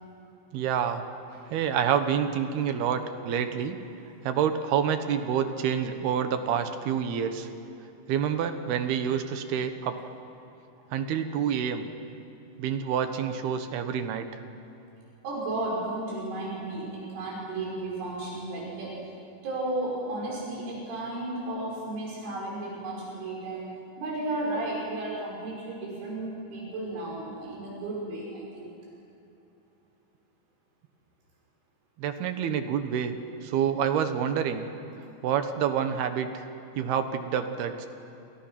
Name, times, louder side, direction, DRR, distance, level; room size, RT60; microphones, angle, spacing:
voice 1, 0.5-1.0 1.5-3.8 4.2-7.5 8.1-10.0 10.9-11.8 12.6-14.3 32.0-33.1 33.4-34.7 35.2-36.4 36.8-37.9, right 8 dB, 70° right, 8 dB, 2.8 m, -27 dB
voice 2, 15.2-19.0 19.4-23.7 24.0-28.7, right 2 dB, 85° right, -4 dB, 8.7 m, -33 dB
29.5 x 27.5 x 6.0 m, 2.8 s
omnidirectional pair, 5.4 m